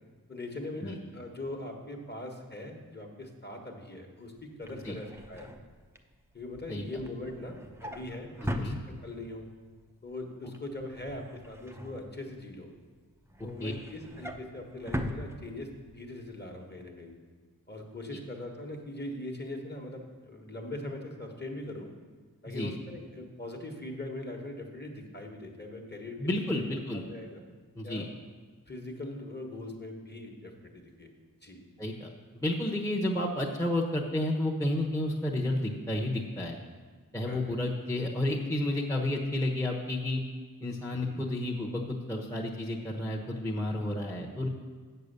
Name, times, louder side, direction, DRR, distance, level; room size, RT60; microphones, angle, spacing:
voice 1, 0.3-5.5 6.3-8.7 9.0-9.5 10.0-12.7 13.4-17.1 17.7-21.9 22.4-26.2 26.6-27.4 27.8-28.1 28.7-31.1 31.4-31.6 37.2-37.6 40.9-41.2, left 1 dB, 30° left, 2 dB, 1.4 m, -41 dB
Drawer open or close, 4.4-9.4 9.8-10.1 10.4-12.6 13.0-16.0 16.3-16.5 16.8-16.9, equal, 5° right, 0.7 m, -40 dB
voice 2, 8.4-8.8 13.6-13.7 18.1-18.2 22.5-22.7 26.2-27.0 27.8-28.1 31.8-36.6 37.1-40.2 40.6-44.5, left 1 dB, 10° left, -3 dB, 1.0 m, -31 dB
8.0 x 6.8 x 6.7 m, 1.5 s
wide cardioid pair, 70°, 36 cm